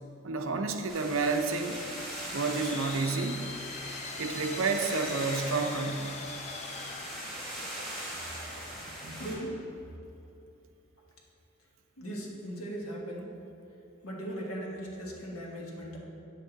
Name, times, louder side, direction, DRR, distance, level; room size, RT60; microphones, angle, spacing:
voice 1, 0.2-1.8 2.3-3.5 4.2-6.2 8.7-9.2, right 4 dB, 70° right, 5 dB, 0.7 m, -30 dB
sound 1, 0.9-9.3, equal, ahead, 2.2 m, -40 dB
sound 2, 2.3-8.2, left 6 dB, 30° left, 0.3 m, -43 dB
voice 2, 9.2-9.6 12.0-13.3 14.0-16.0, right 1 dB, 80° left, -2 dB, 1.6 m, -38 dB
8.8 x 7.8 x 4.0 m, 2.8 s
head